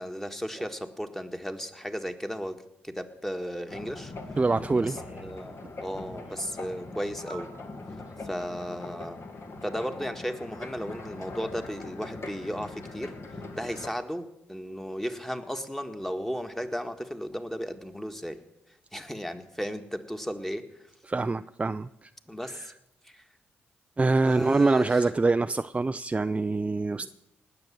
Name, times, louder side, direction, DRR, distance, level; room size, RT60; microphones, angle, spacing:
voice 1, 0.0-4.1 4.7-7.5 8.2-9.2 9.6-18.4 18.9-20.8 22.3-22.7 23.0-23.3 24.2-25.1 27.0-27.1, equal, 5° left, 6 dB, 1.7 m, -35 dB
sound 1, 3.7-13.9, left 2 dB, 50° left, 2.0 m, -41 dB
voice 2, 4.4-5.0 21.1-22.1 22.4-22.7 24.0-27.1, right 3 dB, 20° right, 12 dB, 0.4 m, -25 dB
19.0 x 6.8 x 7.5 m, 0.85 s
hypercardioid pair, 45°, 6 cm